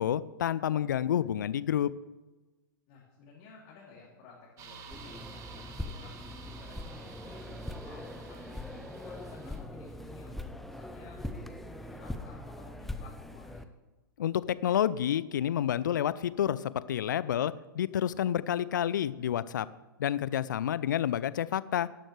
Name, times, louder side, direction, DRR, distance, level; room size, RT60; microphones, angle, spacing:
voice 1, 0.0-1.9 14.2-19.7 20.0-21.9, left 10 dB, 60° left, 18 dB, 0.5 m, -29 dB
voice 2, 2.9-10.3 10.6-13.6, left 4 dB, 40° left, -5 dB, 2.8 m, -54 dB
sound 1, 4.6-9.6, right 6 dB, 25° right, 1.4 m, -51 dB
sound 2, 4.9-13.6, left 1 dB, ahead, 0.6 m, -41 dB
13.0 x 11.5 x 3.3 m, 1.1 s
figure-of-eight pair, 105°, 11 cm